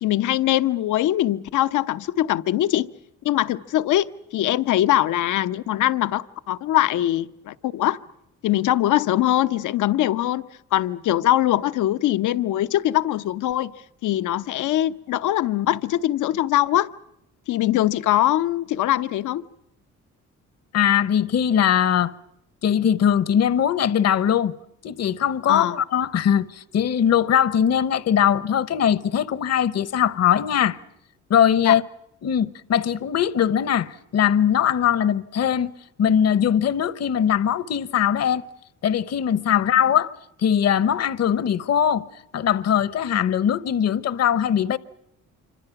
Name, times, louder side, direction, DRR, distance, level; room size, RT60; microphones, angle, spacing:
voice 1, 0.0-2.9 3.2-8.0 8.4-10.4 10.7-13.7 14.0-16.9 17.5-19.4 25.5-25.8 31.6-31.8, left 14 dB, 80° left, 0.9 m, -22 dB
voice 2, 20.7-22.1 22.6-24.5 24.8-30.8 31.3-31.8 32.2-35.7 36.0-38.4 38.8-40.1 40.4-42.1 42.3-44.8, left 9 dB, 55° left, 1.0 m, -20 dB
26.5 x 25.5 x 5.9 m
cardioid pair, 90°, 30 cm